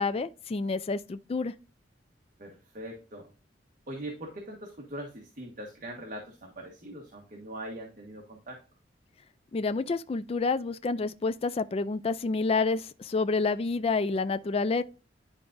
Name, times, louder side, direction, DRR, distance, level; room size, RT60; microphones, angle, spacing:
voice 1, 0.0-1.5 9.5-14.8, left 4 dB, 35° left, 0.3 m, -28 dB
voice 2, 2.4-3.3 3.9-8.6, right 1 dB, 45° right, 1.4 m, -41 dB
10.5 x 4.8 x 2.6 m
head